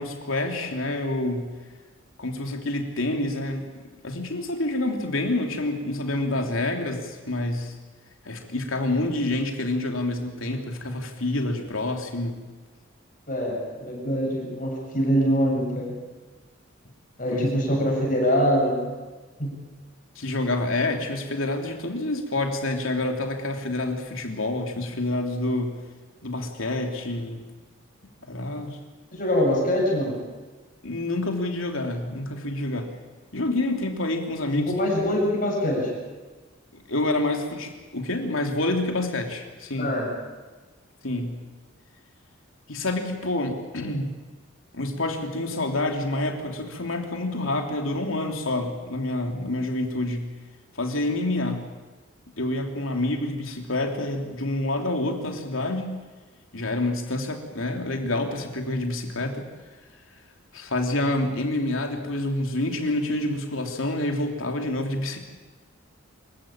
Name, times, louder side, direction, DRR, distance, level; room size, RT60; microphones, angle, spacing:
voice 1, 0.0-1.5 2.2-7.7 8.2-12.4 17.3-17.5 20.1-25.8 26.2-27.5 28.3-28.8 30.8-32.9 33.3-34.7 36.7-39.9 41.0-41.4 42.7-44.1 44.7-50.3 50.7-51.6 52.4-56.0 56.5-59.4 60.5-65.2, left 2 dB, 80° left, 3 dB, 3.1 m, -28 dB
voice 2, 13.3-15.9 17.2-18.8 19.4-19.5 29.1-30.1 34.5-35.9 39.8-40.1, equal, 40° left, -2 dB, 7.6 m, -24 dB
25.5 x 15.0 x 8.9 m, 1.3 s
head